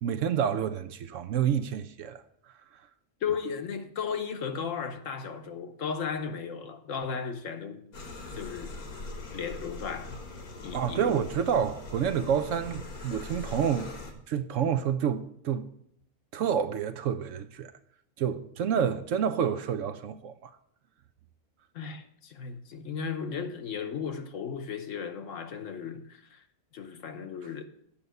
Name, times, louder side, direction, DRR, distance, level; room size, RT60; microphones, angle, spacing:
voice 1, 0.0-2.2 10.7-13.9 14.3-15.7 16.3-17.7 18.2-20.5, right 8 dB, 65° right, 0.9 m, -28 dB
voice 2, 3.2-7.8 8.3-8.8 9.3-10.2 10.6-11.1 21.7-26.5 26.7-27.7, left 6 dB, 65° left, 1.2 m, -35 dB
sound 1, 7.9-14.1, left 2 dB, 85° left, 1.8 m, -41 dB
8.6 x 5.5 x 7.9 m
omnidirectional pair, 1.5 m